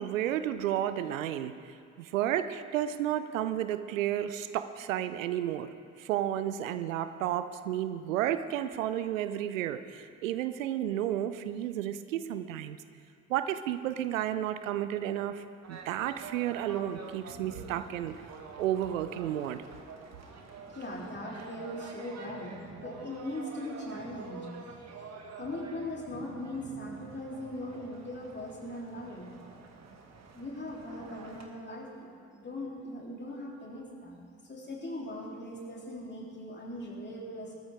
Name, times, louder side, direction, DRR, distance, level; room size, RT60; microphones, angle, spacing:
voice 1, 0.0-1.5 2.0-5.7 6.0-12.8 13.3-18.1 18.6-19.6, right 11 dB, 75° right, 12 dB, 0.6 m, -32 dB
sound 1, 15.6-31.5, right 4 dB, 40° right, 1.9 m, -47 dB
voice 2, 20.6-24.6 25.4-29.3 30.4-34.2 34.4-37.6, left 1 dB, 25° left, -2 dB, 3.6 m, -40 dB
20.5 x 13.5 x 3.6 m, 2.3 s
figure-of-eight pair, 50°, 40 cm